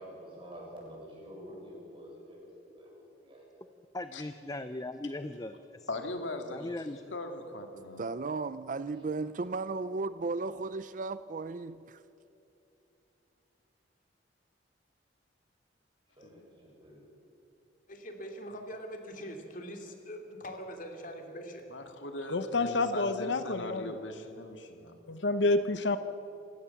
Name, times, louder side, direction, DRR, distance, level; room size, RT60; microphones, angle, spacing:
voice 1, 0.0-2.4 2.8-3.6 16.2-17.0, equal, 30° right, 7.1 m, -48 dB
voice 2, 3.9-5.9 6.5-7.1, left 2 dB, 20° left, 0.6 m, -39 dB
voice 3, 5.9-8.1 16.2-16.4 21.7-25.2, left 2 dB, 90° left, 2.3 m, -40 dB
voice 4, 8.0-12.0, right 3 dB, 45° right, 0.5 m, -35 dB
voice 5, 17.9-21.6, equal, 45° left, 2.8 m, -43 dB
voice 6, 22.3-24.0 25.1-26.0, left 2 dB, 70° left, 1.0 m, -28 dB
27.5 x 16.0 x 7.2 m
head